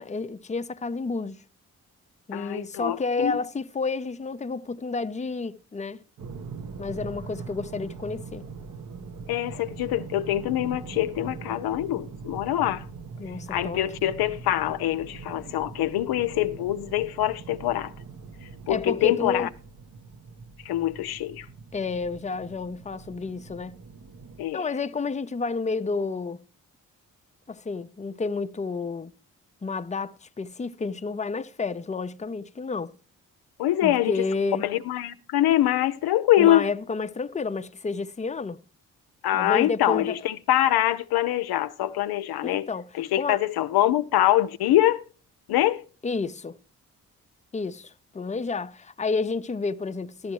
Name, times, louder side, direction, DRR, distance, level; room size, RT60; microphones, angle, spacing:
voice 1, 0.0-1.4 2.3-6.0 6.8-8.5 13.2-13.8 18.7-19.5 21.7-23.8 24.5-26.4 27.5-29.1 29.6-32.9 33.8-34.7 36.4-38.6 39.3-40.2 42.4-42.9 43.2-43.4 46.0-46.6 47.5-50.3, left 4 dB, 20° left, 0.7 m, -30 dB
voice 2, 2.3-3.3 9.3-12.9 13.5-17.9 18.7-19.5 20.6-21.5 24.4-24.7 33.6-34.3 34.6-36.7 39.2-42.7 42.9-45.0 45.5-45.8, left 13 dB, 75° left, 0.6 m, -24 dB
sound 1, 6.2-24.5, right 5 dB, 55° right, 1.2 m, -42 dB
14.5 x 12.0 x 3.1 m
hypercardioid pair, 40°, 38 cm